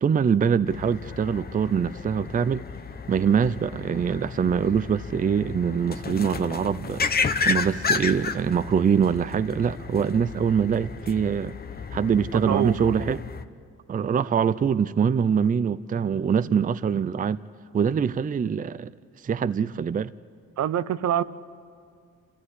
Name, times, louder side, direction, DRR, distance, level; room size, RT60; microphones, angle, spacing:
voice 1, 0.0-2.6 3.1-11.5 11.9-13.2 13.9-17.4 17.7-18.9 19.2-20.1, right 7 dB, 30° right, 14 dB, 0.5 m, -24 dB
sound 1, 0.7-13.4, left 5 dB, 30° left, 1.0 m, -32 dB
voice 2, 12.3-12.8 16.4-16.6 20.6-21.2, right 10 dB, 60° right, 15 dB, 0.7 m, -25 dB
27.0 x 14.5 x 9.7 m, 2.2 s
cardioid pair, 90°, 30 cm